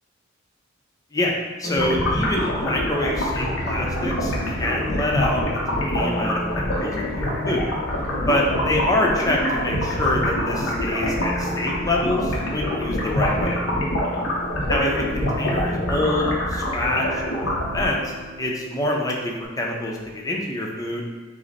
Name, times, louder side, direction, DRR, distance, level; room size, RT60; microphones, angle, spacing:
voice 1, 1.1-7.7 8.3-13.6 14.7-21.0, left 1 dB, 20° left, -1 dB, 0.6 m, -26 dB
sound 1, 1.6-19.5, left 1 dB, 45° right, 0.7 m, -35 dB
sound 2, 1.8-18.2, equal, 85° left, 0.8 m, -25 dB
Piano, 3.3-20.0, equal, 90° right, 0.7 m, -42 dB
5.0 x 2.0 x 4.1 m, 1.4 s
head